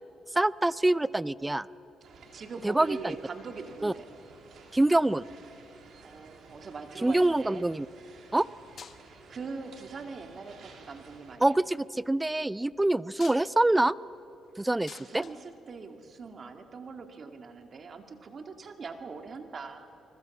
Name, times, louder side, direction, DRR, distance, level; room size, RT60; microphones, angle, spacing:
voice 1, 0.3-1.7 2.6-3.0 3.8-3.9 4.7-5.2 7.0-7.9 8.3-8.5 11.4-13.9 14.6-15.2, right 2 dB, 10° right, 20 dB, 0.5 m, -25 dB
sound 1, 2.0-11.4, right 4 dB, 65° right, 3.3 m, -53 dB
voice 2, 2.3-4.1 6.0-7.7 9.1-11.6 14.9-19.9, right 4 dB, 45° right, 6 dB, 2.1 m, -42 dB
sound 2, 6.5-7.2 8.3-8.5 8.8-9.4 10.3-10.8 12.9-16.3 17.6-17.7, left 7 dB, 50° left, 1.1 m, -51 dB
29.0 x 20.5 x 7.2 m, 2.9 s
cardioid pair, 90°, 0 cm